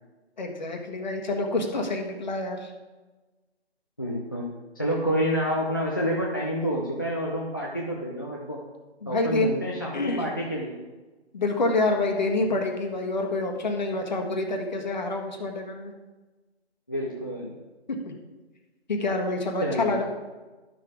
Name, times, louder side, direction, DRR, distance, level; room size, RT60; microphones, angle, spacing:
voice 1, 0.4-2.7 9.0-9.5 9.9-10.3 11.3-15.9 17.9-18.1 18.9-20.0, left 2 dB, 40° left, 2 dB, 1.5 m, -27 dB
voice 2, 4.0-4.5 4.7-8.6 9.1-10.7 16.9-17.5 19.6-20.0, equal, 20° left, -3 dB, 0.6 m, -28 dB
11.5 x 6.4 x 4.8 m, 1.2 s
figure-of-eight pair, 160°, 33 cm